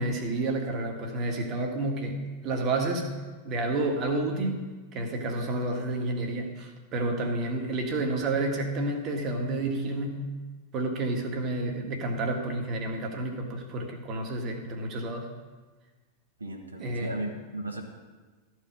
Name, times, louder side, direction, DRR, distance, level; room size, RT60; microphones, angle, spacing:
voice 1, 0.0-3.1 3.4-10.4 10.7-15.3 16.8-17.2, right 2 dB, 35° right, 3 dB, 1.6 m, -30 dB
voice 2, 16.4-17.8, right 1 dB, 75° right, 1 dB, 1.4 m, -36 dB
13.5 x 4.8 x 8.2 m, 1.3 s
figure-of-eight pair, 90°, 0 cm